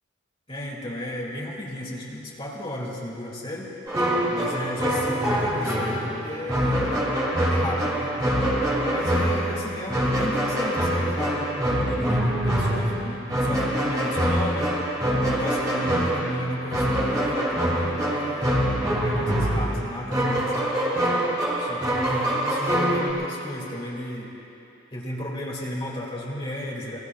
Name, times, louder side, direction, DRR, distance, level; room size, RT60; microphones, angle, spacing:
voice 1, 0.5-3.7 4.3-7.1 7.5-8.1 8.9-14.7 15.2-20.7 21.6-24.3 24.9-27.0, left 1 dB, 25° left, -4 dB, 2.4 m, -34 dB
sound 1, 3.9-23.1, right 1 dB, 20° right, 2.8 m, -24 dB
26.5 x 20.5 x 2.4 m, 2.8 s
head